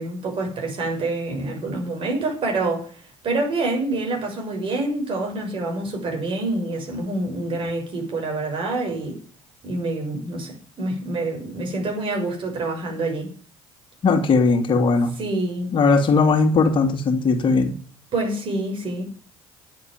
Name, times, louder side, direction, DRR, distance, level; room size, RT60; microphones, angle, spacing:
voice 1, 0.0-2.9 3.2-9.2 9.6-13.3 15.2-15.7 18.1-19.1, right 2 dB, 50° right, 6.7 m, -26 dB
voice 2, 14.0-15.1 15.7-17.7, left 4 dB, 45° left, 2.4 m, -18 dB
10.0 x 7.6 x 9.5 m
supercardioid pair, 85°, 11 cm